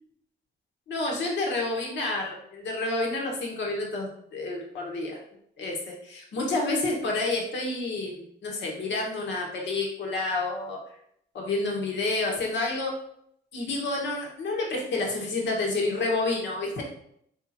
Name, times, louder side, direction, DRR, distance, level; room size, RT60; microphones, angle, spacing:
voice 1, 0.9-5.2 5.6-10.8 11.3-13.0 13.5-16.8, left 2 dB, 70° left, -1 dB, 1.3 m, -29 dB
3.4 x 2.8 x 4.2 m, 0.70 s
cardioid pair, 65°, 19 cm